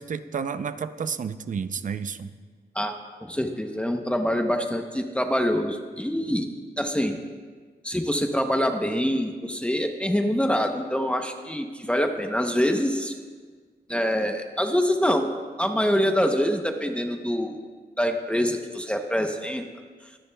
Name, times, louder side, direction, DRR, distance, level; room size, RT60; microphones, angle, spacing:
voice 1, 0.0-2.3, right 6 dB, 50° right, 12 dB, 0.5 m, -31 dB
voice 2, 2.7-6.5 6.8-7.2 7.8-13.1 13.9-15.3 15.6-17.6 18.0-19.6, equal, 5° left, 4 dB, 0.7 m, -25 dB
23.0 x 10.0 x 2.2 m, 1.5 s
wide cardioid pair, 110°, 16 cm